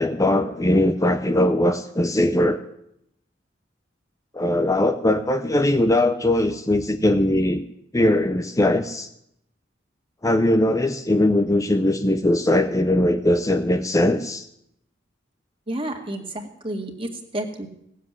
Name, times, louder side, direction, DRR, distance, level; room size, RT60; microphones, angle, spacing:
voice 1, 0.0-2.6 4.3-7.6 7.9-9.1 10.2-14.5, left 1 dB, 20° left, 8 dB, 0.6 m, -20 dB
voice 2, 15.7-17.7, right 1 dB, 30° right, 4 dB, 2.0 m, -31 dB
17.5 x 7.5 x 9.7 m, 0.76 s
head